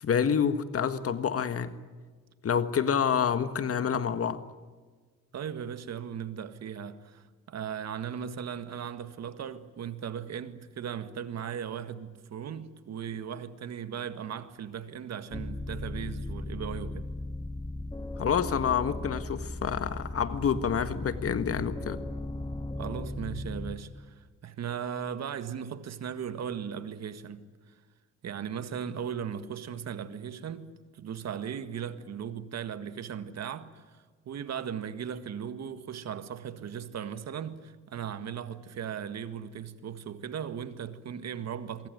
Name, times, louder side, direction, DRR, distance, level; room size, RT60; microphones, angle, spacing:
voice 1, 0.0-1.7 2.4-4.4 18.2-22.0, left 7 dB, 50° left, 1.7 m, -28 dB
voice 2, 5.3-17.1 22.8-27.5 28.2-34.0 34.3-41.9, right 8 dB, 60° right, 1.8 m, -37 dB
sound 1, 15.3-23.8, left 2 dB, 10° left, 1.6 m, -37 dB
25.0 x 23.0 x 9.3 m
cardioid pair, 90°, 30 cm